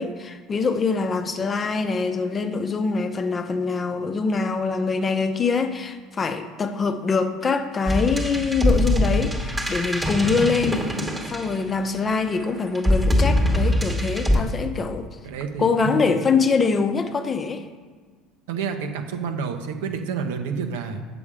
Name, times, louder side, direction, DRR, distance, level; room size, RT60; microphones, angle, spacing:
voice 1, 0.0-10.9 11.3-15.1 15.6-17.7, left 4 dB, 30° left, 8 dB, 0.7 m, -24 dB
sound 1, 7.9-11.9 12.8-14.4, equal, 10° right, 1.1 m, -22 dB
voice 2, 15.2-16.3 18.5-21.0, right 6 dB, 90° right, 5 dB, 0.8 m, -29 dB
7.2 x 7.0 x 4.9 m, 1.5 s
supercardioid pair, 100°, 0 cm